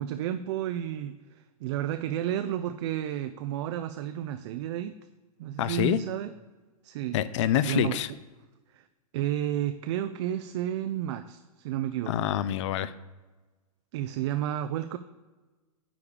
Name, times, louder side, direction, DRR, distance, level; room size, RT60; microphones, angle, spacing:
voice 1, 0.0-5.0 5.4-6.3 6.8-7.2 7.6-8.0 8.7-8.8 9.1-12.2 13.9-15.0, right 11 dB, 45° right, 10 dB, 0.4 m, -31 dB
voice 2, 5.6-6.0 7.1-8.1 12.1-12.9, left 11 dB, 50° left, 16 dB, 0.5 m, -26 dB
9.9 x 3.5 x 6.5 m, 1.2 s
hypercardioid pair, 120°, 20 cm